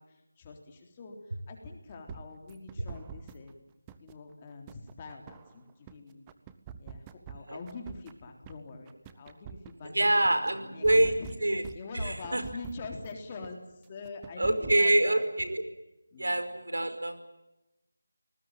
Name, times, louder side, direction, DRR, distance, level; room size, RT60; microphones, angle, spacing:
voice 1, 0.0-3.6 4.0-6.3 6.8-11.3 11.7-15.2 16.1-16.4, left 3 dB, 20° left, 4 dB, 3.7 m, -44 dB
sound 1, 2.1-3.5 3.9-5.9 6.3-8.5 8.9-10.5 10.8-13.1 13.4-13.5 13.8-14.8, right 8 dB, 15° right, 1.0 m, -46 dB
voice 2, 9.9-11.1 11.4-11.6 12.0-12.4 14.4-15.6 16.2-17.3, right 1 dB, 80° right, 9 dB, 4.9 m, -25 dB
26.0 x 20.0 x 9.2 m, 0.93 s
figure-of-eight pair, 165°, 0 cm